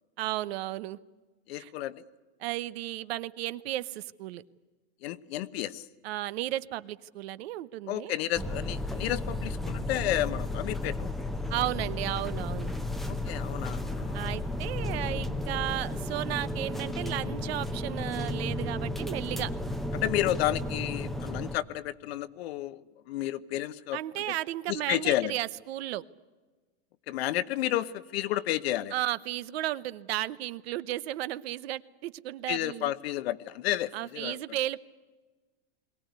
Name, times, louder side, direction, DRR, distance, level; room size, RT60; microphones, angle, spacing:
voice 1, 0.2-1.0 1.5-1.7 2.4-4.4 6.0-8.1 11.5-12.7 14.1-19.5 23.9-26.0 28.9-32.9 33.9-34.8, right 15 dB, 70° right, 16 dB, 1.0 m, -34 dB
voice 2, 1.5-2.1 5.0-5.9 7.9-11.3 13.1-14.2 19.9-22.8 23.1-24.0 24.7-25.4 27.1-28.9 32.5-34.4, left 14 dB, 70° left, 14 dB, 1.1 m, -31 dB
sound 1, 8.3-21.6, left 1 dB, ahead, 0.8 m, -33 dB
22.5 x 18.0 x 9.5 m, 1.3 s
supercardioid pair, 145°, 32 cm